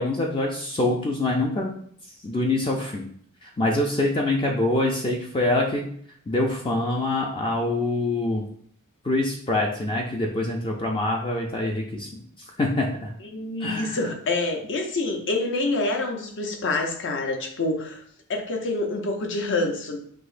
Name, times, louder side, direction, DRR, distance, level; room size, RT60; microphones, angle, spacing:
voice 1, 0.0-1.7 2.2-3.0 3.4-5.9 6.3-8.4 9.0-12.1 12.6-13.1 13.6-14.0, left 2 dB, 25° left, 0 dB, 0.4 m, -25 dB
voice 2, 13.2-18.0 18.3-20.0, left 2 dB, 60° left, 3 dB, 0.7 m, -27 dB
6.0 x 2.8 x 2.5 m, 0.62 s
head